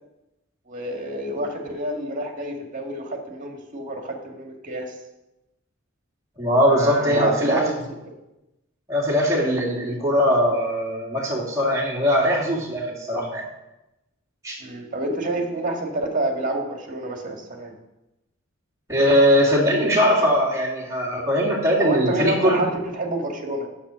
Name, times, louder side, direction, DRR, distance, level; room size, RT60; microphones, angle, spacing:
voice 1, 0.7-5.0 6.7-8.2 14.6-17.7 21.8-23.7, right 2 dB, 40° right, 2 dB, 1.8 m, -28 dB
voice 2, 6.4-7.6 8.9-13.4 14.4-14.6 18.9-22.6, equal, 15° right, -5 dB, 2.3 m, -20 dB
8.6 x 7.1 x 6.4 m, 0.95 s
head